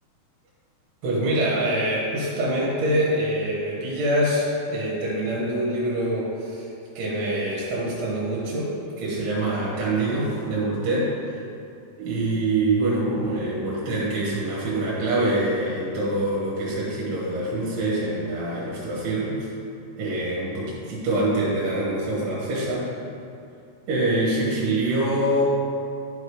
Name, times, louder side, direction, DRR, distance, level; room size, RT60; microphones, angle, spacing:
voice 1, 1.0-6.7 6.9-11.4 12.0-19.5 20.0-22.9 23.9-25.4, right 1 dB, 70° right, -5 dB, 3.1 m, -25 dB
11.0 x 3.8 x 4.8 m, 2.5 s
omnidirectional pair, 5.1 m